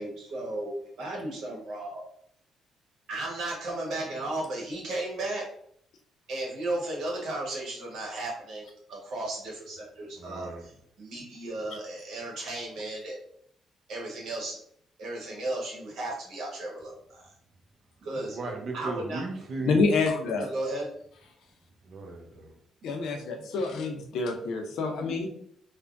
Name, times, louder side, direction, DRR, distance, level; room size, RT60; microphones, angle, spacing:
voice 1, 0.0-2.1 3.1-5.5 6.3-13.2 13.9-14.6 15.0-17.3 18.0-18.4 18.7-19.2 20.4-20.9 23.4-23.5, right 2 dB, 75° right, -2 dB, 1.1 m, -35 dB
voice 2, 10.2-10.6 18.3-19.8 21.9-22.5, right 3 dB, 55° right, 3 dB, 0.7 m, -36 dB
voice 3, 19.6-20.5 22.8-25.3, left 3 dB, 75° left, 3 dB, 0.5 m, -27 dB
3.3 x 2.1 x 2.5 m, 0.66 s
cardioid pair, 90°, 0 cm